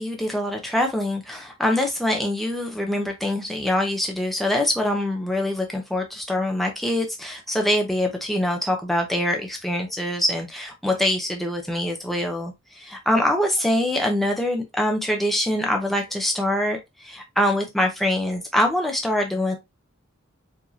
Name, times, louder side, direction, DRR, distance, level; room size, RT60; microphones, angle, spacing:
voice 1, 0.0-19.6, left 1 dB, ahead, 0.6 m, -24 dB
4.8 x 2.7 x 2.7 m
head